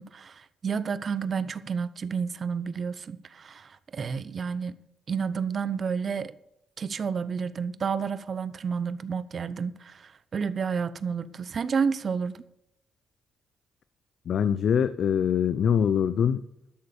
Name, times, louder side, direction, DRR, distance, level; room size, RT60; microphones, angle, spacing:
voice 1, 0.0-4.8 5.1-6.3 6.8-12.4, right 6 dB, 45° right, 0.8 m, -30 dB
voice 2, 14.3-16.4, left 8 dB, 60° left, 0.6 m, -23 dB
12.5 x 6.8 x 6.8 m
cardioid pair, 90°, 0 cm